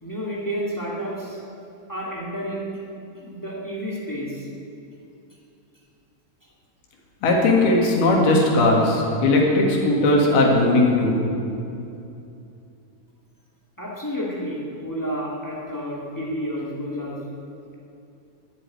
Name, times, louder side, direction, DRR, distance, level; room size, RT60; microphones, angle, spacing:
voice 1, 0.0-1.4 1.9-2.8 3.1-4.5 13.8-17.2, equal, 15° left, -4 dB, 0.6 m, -30 dB
voice 2, 7.2-11.2, left 2 dB, 90° left, -1 dB, 4.0 m, -18 dB
13.0 x 8.4 x 9.5 m, 2.7 s
omnidirectional pair, 4.3 m